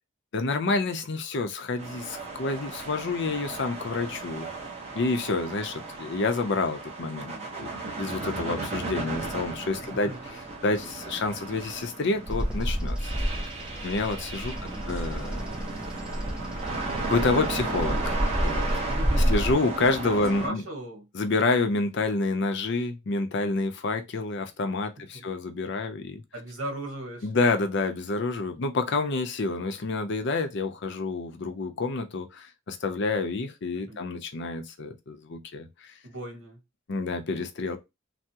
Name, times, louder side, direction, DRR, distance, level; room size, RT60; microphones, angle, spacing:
voice 1, 0.3-4.5 4.9-7.3 7.6-10.1 10.6-13.1 13.8-14.6 14.9-15.4 17.1-18.7 19.3-20.6 21.1-26.2 27.2-35.9 36.9-37.8, left 3 dB, 60° left, 0.5 m, -28 dB
sound 1, 1.8-20.5, right 3 dB, 30° right, 0.8 m, -35 dB
Bird vocalization bird call bird song, 12.3-19.5, equal, 5° right, 0.5 m, -29 dB
voice 2, 14.6-14.9 18.9-19.3 20.4-21.0 25.1-25.3 26.3-27.3 33.9-34.0 36.0-36.6, right 1 dB, 70° right, 1.2 m, -37 dB
3.4 x 2.0 x 2.8 m
head